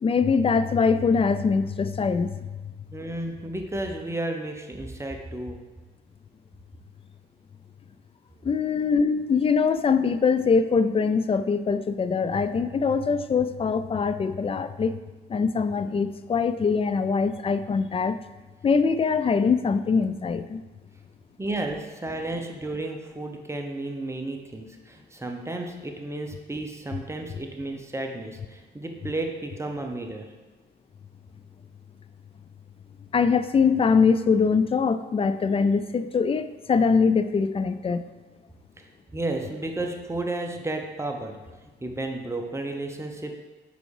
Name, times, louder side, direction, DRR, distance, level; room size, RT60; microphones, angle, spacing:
voice 1, 0.0-2.3 8.4-15.0 15.3-18.2 18.6-20.6 33.1-38.1, left 5 dB, 30° left, 12 dB, 0.4 m, -23 dB
voice 2, 2.9-5.6 21.4-30.3 39.1-41.4 41.8-43.3, right 2 dB, 15° right, 3 dB, 0.9 m, -32 dB
5.1 x 4.8 x 4.8 m, 1.2 s
supercardioid pair, 65°, 20 cm